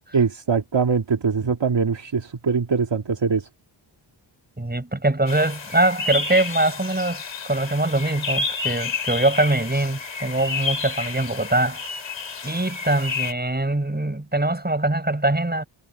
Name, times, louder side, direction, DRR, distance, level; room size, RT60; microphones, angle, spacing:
voice 1, 0.1-3.4, right 5 dB, 60° right, 2.2 m, -22 dB
voice 2, 4.6-11.8 12.4-15.7, right 2 dB, 20° right, 6.4 m, -23 dB
sound 1, 5.3-13.3, left 4 dB, 70° left, 6.9 m, -30 dB
cardioid pair, 60°, 49 cm